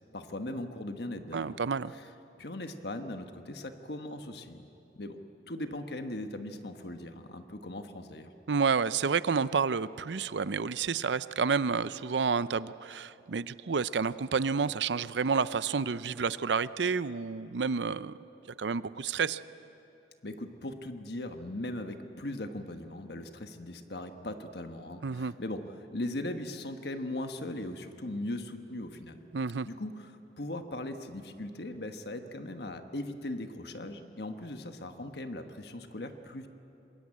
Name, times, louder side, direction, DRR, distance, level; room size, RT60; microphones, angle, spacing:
voice 1, 0.1-1.6 1.9-2.0 2.4-4.7 5.0-5.2 5.5-8.3 20.2-29.2 29.6-36.5, left 1 dB, 65° left, 7 dB, 1.4 m, -39 dB
voice 2, 1.3-1.9 8.5-18.2 18.6-19.4 25.0-25.3 29.3-29.7, right 5 dB, 85° right, 16 dB, 0.6 m, -30 dB
26.5 x 21.5 x 8.6 m, 2.9 s
head